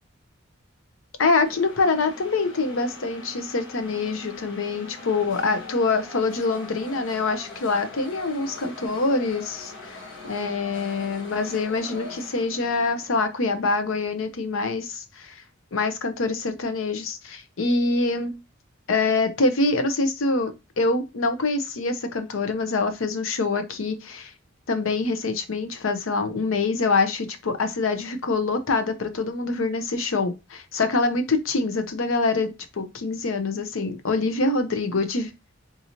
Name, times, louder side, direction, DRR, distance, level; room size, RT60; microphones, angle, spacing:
voice 1, 1.2-15.4 15.7-18.4 18.9-24.3 24.7-35.3, left 3 dB, 90° left, 0.7 m, -25 dB
sound 1, 1.4-13.7, left 2 dB, 65° left, 1.4 m, -42 dB
3.8 x 2.9 x 2.8 m
head